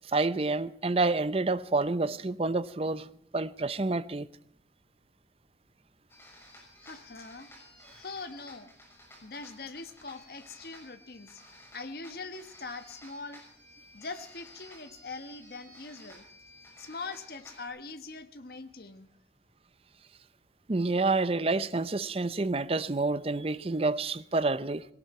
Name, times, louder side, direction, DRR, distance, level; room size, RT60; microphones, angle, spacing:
voice 1, 0.1-3.1 3.3-4.3 20.7-24.9, right 3 dB, 30° right, 0.6 m, -28 dB
sound 1, 6.1-17.7, left 1 dB, 15° left, 6.0 m, -54 dB
voice 2, 6.8-7.5 7.9-8.7 9.2-11.4 11.7-13.4 13.9-16.2 16.8-19.1, left 3 dB, 55° left, 1.3 m, -42 dB
18.0 x 18.0 x 4.3 m
head